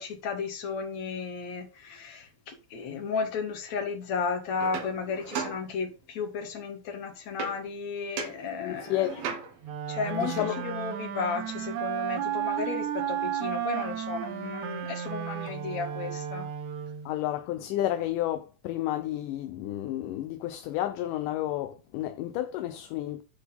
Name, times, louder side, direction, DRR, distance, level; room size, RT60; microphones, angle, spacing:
voice 1, 0.0-9.2 9.9-16.5, left 5 dB, 55° left, 2.7 m, -34 dB
sound 1, 4.6-6.2 7.4-7.8 8.2-9.8 13.1-13.2 13.4-14.5, right 6 dB, 85° right, 3.4 m, -39 dB
voice 2, 8.6-9.2 10.2-10.6 17.1-23.2, left 13 dB, 75° left, 2.0 m, -31 dB
Wind instrument woodwind instrument, 9.6-17.1, right 9 dB, 70° right, 2.0 m, -33 dB
10.5 x 4.1 x 5.6 m
omnidirectional pair, 4.2 m